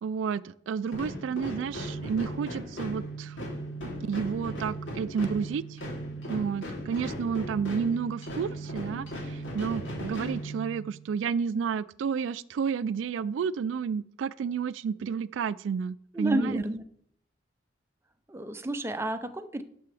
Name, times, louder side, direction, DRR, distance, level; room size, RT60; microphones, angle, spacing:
voice 1, 0.0-3.4 3.8-5.8 6.3-16.6, right 6 dB, 80° right, 18 dB, 0.3 m, -31 dB
sound 1, 0.9-11.1, right 1 dB, 85° left, 3.0 m, -37 dB
voice 2, 16.1-16.8 18.3-19.6, right 1 dB, 15° right, 8 dB, 0.6 m, -31 dB
11.5 x 6.8 x 3.4 m, 0.66 s
head